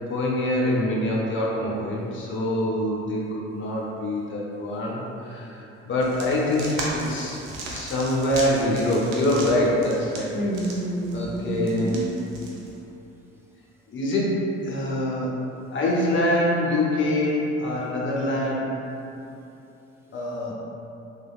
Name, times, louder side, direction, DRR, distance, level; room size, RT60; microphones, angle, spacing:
voice 1, 0.1-5.6 5.8-7.4 7.7-10.4 11.1-11.9 13.9-15.3 15.7-18.8 20.1-20.5, left 1 dB, 35° left, -4 dB, 0.7 m, -25 dB
sound 1, 6.0-12.8, right 2 dB, 60° right, 0.6 m, -37 dB
voice 2, 10.3-12.0, right 1 dB, 5° right, -5 dB, 0.5 m, -28 dB
3.3 x 2.3 x 2.4 m, 2.8 s
hypercardioid pair, 50°, 35 cm